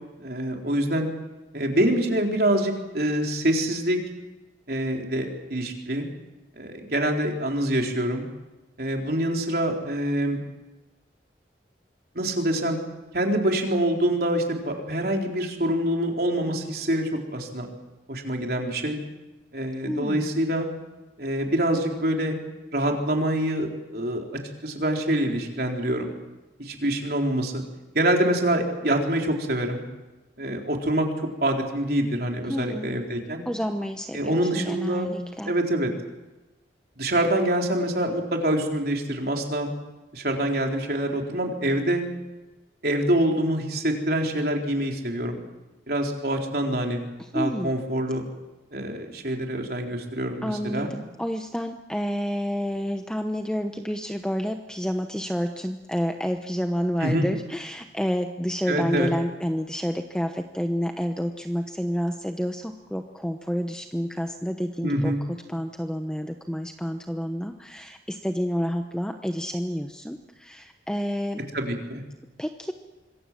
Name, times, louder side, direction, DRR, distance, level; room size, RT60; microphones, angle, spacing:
voice 1, 0.2-1.1 1.5-4.0 4.7-6.1 6.6-8.3 8.8-10.4 12.2-12.8 13.1-17.7 18.1-19.0 19.5-20.7 21.2-22.4 22.7-24.2 24.6-26.1 26.6-27.6 27.9-29.8 30.4-33.4 34.1-35.1 35.5-35.9 37.0-39.7 40.1-42.0 42.8-45.4 45.9-47.0 47.3-48.2 48.7-50.9 57.0-57.3 58.7-59.1 64.8-65.2 71.5-72.0, right 1 dB, 60° right, 2 dB, 4.0 m, -25 dB
voice 2, 19.8-20.3 32.5-32.9 33.4-35.5 47.2-47.7 50.4-71.4 72.4-72.7, equal, 5° left, 5 dB, 1.0 m, -29 dB
26.0 x 22.0 x 7.6 m, 1.1 s
head